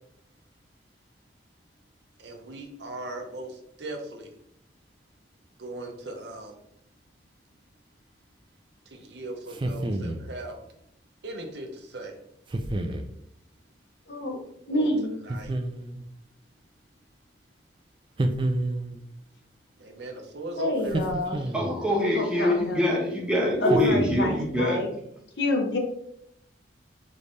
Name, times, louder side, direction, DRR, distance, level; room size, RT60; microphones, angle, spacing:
voice 1, 2.2-4.3 5.6-6.6 8.9-10.6 11.2-12.1 14.7-14.9 15.3-15.5 19.8-21.5, right 2 dB, 65° right, 3 dB, 0.7 m, -38 dB
sound 1, 9.5-10.3 12.5-13.1 15.3-16.1 18.2-19.1 20.9-21.9 23.7-24.5, right 1 dB, 25° right, 0.3 m, -29 dB
voice 2, 14.1-14.4 14.6-15.1 20.6-21.4 22.1-22.8 23.6-24.9 25.4-25.8, left 1 dB, 70° left, 3 dB, 0.8 m, -27 dB
voice 3, 21.5-24.9, left 1 dB, 5° right, -3 dB, 0.9 m, -24 dB
5.1 x 3.2 x 2.6 m, 0.74 s
head